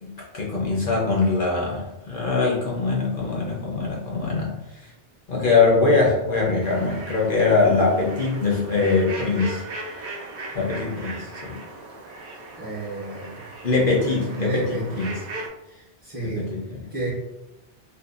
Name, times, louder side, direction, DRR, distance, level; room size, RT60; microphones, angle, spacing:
voice 1, 0.0-4.5 5.3-9.6 10.5-11.6 13.6-15.1 16.2-16.8, left 3 dB, 55° left, -3 dB, 0.8 m, -22 dB
sound 1, 6.6-15.5, right 2 dB, 65° right, 0.7 m, -38 dB
voice 2, 12.6-13.4 14.1-15.2 15.7-16.5 16.9-17.1, right 1 dB, 30° right, -8 dB, 0.5 m, -31 dB
2.6 x 2.2 x 2.3 m, 0.96 s
omnidirectional pair, 1.1 m